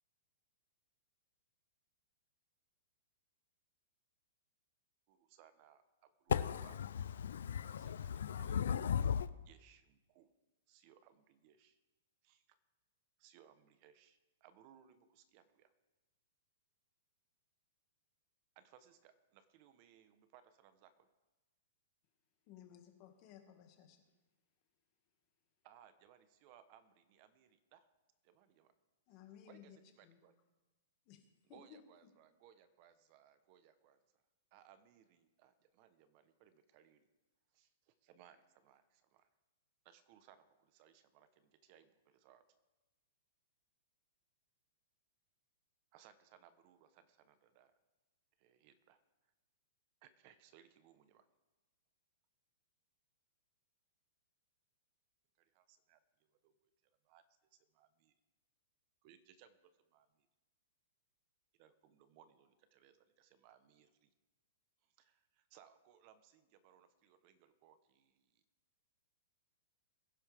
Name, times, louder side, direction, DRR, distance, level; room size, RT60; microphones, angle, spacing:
voice 1, 5.1-6.8 7.7-8.8 9.5-10.3 10.7-11.8 12.2-12.6 13.2-15.7 18.5-21.1 25.6-27.9 28.2-28.7 29.5-30.3 31.5-34.2 34.5-37.1 37.5-39.3 39.8-42.5 45.9-47.7 48.4-49.0 50.0-51.3 55.4-57.2 57.5-58.1 59.0-60.3 61.6-64.1 64.8-68.4, right 9 dB, 40° right, 1.0 m, -66 dB
voice 2, 6.3-9.3, left 8 dB, 80° left, 0.5 m, -36 dB
voice 3, 22.4-24.1 29.1-29.8 30.0-30.2 31.0-32.1, left 9 dB, 35° left, 2.0 m, -59 dB
21.5 x 11.0 x 3.5 m
hypercardioid pair, 155°, 0 cm